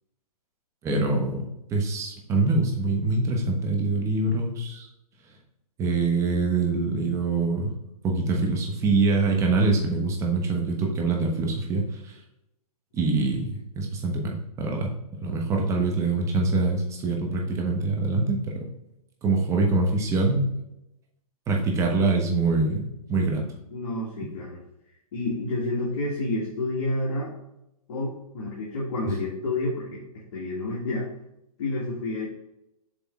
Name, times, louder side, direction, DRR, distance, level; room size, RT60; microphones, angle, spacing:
voice 1, 0.8-4.9 5.8-7.7 8.0-12.1 12.9-14.9 15.2-18.6 19.2-20.5 21.5-22.8 23.1-23.4, right 3 dB, 15° right, 1 dB, 1.2 m, -24 dB
voice 2, 23.7-24.6 25.1-27.3 27.9-31.1 31.6-32.3, left 2 dB, 45° left, -5 dB, 1.9 m, -29 dB
7.2 x 3.6 x 3.6 m, 0.88 s
hypercardioid pair, 150°, 20 cm